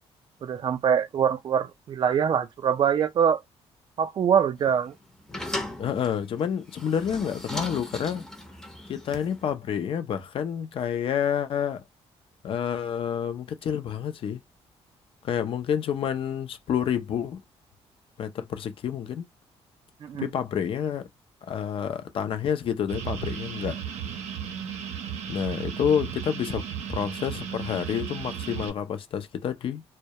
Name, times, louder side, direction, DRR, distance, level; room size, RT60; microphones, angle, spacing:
voice 1, 0.4-3.4 4.0-5.0 20.0-20.3, right 8 dB, 45° right, 0.3 m, -24 dB
sound 1, 4.6-9.5, left 1 dB, 5° left, 0.5 m, -37 dB
voice 2, 5.8-8.2 8.9-11.8 12.4-14.4 15.2-17.4 18.2-19.3 20.2-21.1 21.4-23.8 25.3-26.6 26.9-29.8, left 8 dB, 55° left, 0.4 m, -29 dB
sound 2, 22.9-28.7, right 8 dB, 90° right, 0.6 m, -35 dB
2.2 x 2.0 x 2.7 m
cardioid pair, 125°, 11 cm